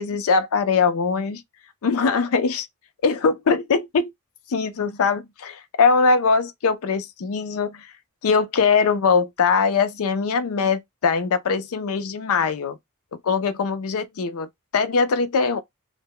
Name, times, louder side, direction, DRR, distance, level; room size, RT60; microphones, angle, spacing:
voice 1, 0.0-1.4 1.8-2.7 3.0-4.1 4.5-7.9 8.2-12.8 13.2-14.5 14.7-15.6, left 5 dB, 70° left, 0.5 m, -21 dB
2.1 x 2.0 x 3.6 m
head